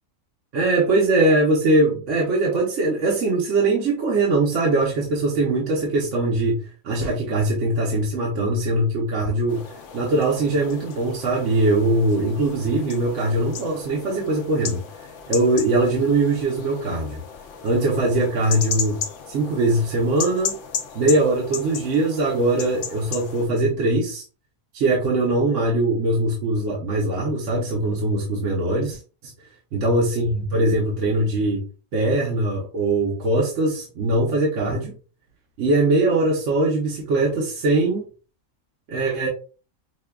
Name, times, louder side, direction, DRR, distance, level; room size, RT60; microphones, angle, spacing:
voice 1, 0.5-9.7 9.9-14.8 15.3-17.2 17.6-19.0 19.3-20.6 20.9-24.2 24.7-29.3 29.7-31.7 31.9-34.9 35.6-38.1 38.9-39.3, right 2 dB, 60° right, -2 dB, 1.1 m, -21 dB
sound 1, 9.5-23.5, left 7 dB, 65° left, 0.9 m, -35 dB
5.7 x 2.2 x 2.2 m, 0.35 s
omnidirectional pair, 1.5 m